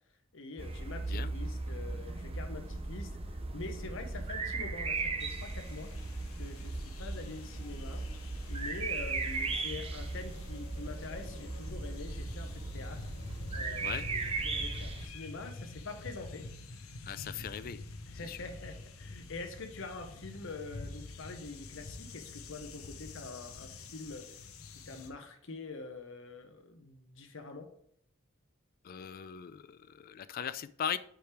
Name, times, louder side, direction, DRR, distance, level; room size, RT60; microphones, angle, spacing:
voice 1, 0.3-8.0 8.5-13.1 13.5-16.5 16.8-17.0 17.3-17.4 18.0-24.3 24.7-27.7, left 3 dB, 65° left, 6 dB, 1.0 m, -45 dB
sound 1, 0.6-15.1, right 3 dB, 25° right, 0.6 m, -37 dB
sound 2, 5.2-25.1, left 3 dB, 85° left, 0.7 m, -47 dB
voice 2, 17.0-17.8 18.3-18.4 28.8-31.0, left 8 dB, 45° left, 15 dB, 0.3 m, -39 dB
5.1 x 5.0 x 4.4 m, 0.67 s
head